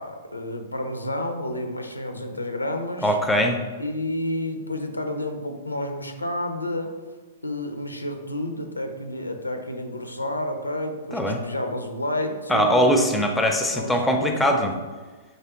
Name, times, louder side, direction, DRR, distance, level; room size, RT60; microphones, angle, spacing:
voice 1, 0.0-3.2 3.8-7.0 7.4-12.8 13.7-14.7, left 1 dB, 85° left, 6 dB, 0.4 m, -30 dB
voice 2, 3.0-3.6 11.1-11.4 12.5-14.7, equal, 5° left, 3 dB, 0.4 m, -21 dB
4.0 x 3.1 x 2.9 m, 1.3 s
figure-of-eight pair, 110°, 0 cm